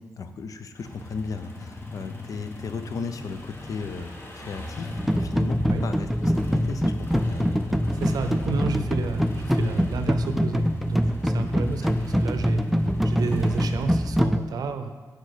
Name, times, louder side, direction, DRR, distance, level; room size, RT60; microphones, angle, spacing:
voice 1, 0.0-7.9 11.7-11.9, left 4 dB, 60° left, 9 dB, 0.6 m, -35 dB
sound 1, 0.7-14.1, left 2 dB, 35° left, 1.2 m, -41 dB
sound 2, 4.9-14.4, equal, ahead, 0.3 m, -24 dB
voice 2, 7.9-12.6 13.0-14.9, right 4 dB, 85° right, 8 dB, 0.6 m, -31 dB
6.4 x 6.3 x 4.9 m, 1.4 s
cardioid pair, 90°, 6 cm